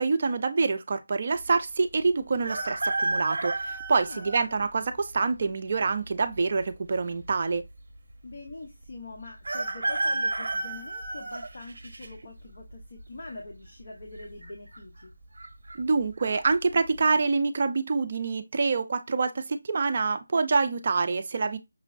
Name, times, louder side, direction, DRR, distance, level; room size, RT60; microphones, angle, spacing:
voice 1, 0.0-7.6 15.8-21.6, right 4 dB, 35° right, 0.4 m, -26 dB
sound 1, 2.4-4.5 5.1-5.2 6.3-7.0 7.3-7.4 7.5-7.6 9.4-12.1 12.6-13.0 14.1-14.5 14.7-14.8 15.4-15.7 16.2-16.4, right 2 dB, 55° right, 0.7 m, -31 dB
voice 2, 4.0-4.4 8.2-15.1, left 3 dB, 45° left, 0.8 m, -44 dB
6.0 x 2.0 x 2.5 m
figure-of-eight pair, 175°, 0 cm